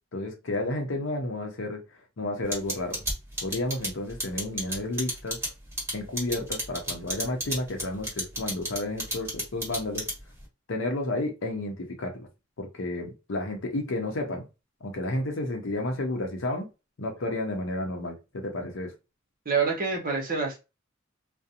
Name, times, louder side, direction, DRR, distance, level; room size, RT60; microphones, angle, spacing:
voice 1, 0.1-1.8 2.2-3.0 3.4-5.4 5.9-10.1 10.7-12.3 12.6-14.5 14.8-16.7 17.0-18.9, left 2 dB, 70° left, 0.6 m, -31 dB
sound 1, 2.5-10.4, right 1 dB, 15° right, 1.1 m, -31 dB
voice 2, 19.4-20.6, right 5 dB, 45° right, 0.8 m, -26 dB
2.5 x 2.0 x 2.7 m
head